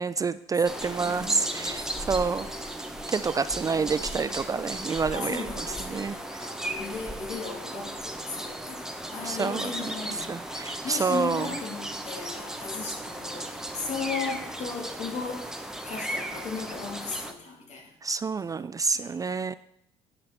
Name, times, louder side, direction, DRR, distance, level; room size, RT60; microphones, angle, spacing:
voice 1, 0.0-2.5 3.1-5.5 5.9-6.1 9.2-9.9 10.3-11.5 18.0-19.5, right 5 dB, 25° right, 15 dB, 0.4 m, -28 dB
voice 2, 0.7-2.8 3.5-4.2 5.1-15.5 15.8-17.9 18.9-19.4, left 4 dB, 55° left, 1 dB, 2.6 m, -37 dB
sound 1, 0.7-17.3, right 1 dB, 5° right, 1.1 m, -36 dB
10.5 x 6.0 x 4.3 m, 0.76 s
hypercardioid pair, 60°, 14 cm